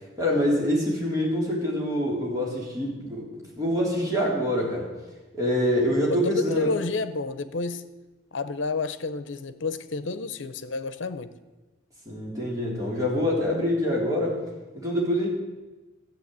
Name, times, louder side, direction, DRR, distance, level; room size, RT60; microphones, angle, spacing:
voice 1, 0.2-3.3 3.6-4.9 5.3-6.7 12.1-14.4 14.7-15.3, equal, 15° right, -4 dB, 3.6 m, -25 dB
voice 2, 6.1-7.8 8.3-11.3, left 3 dB, 80° left, 13 dB, 0.8 m, -30 dB
13.5 x 8.0 x 8.2 m, 1.2 s
head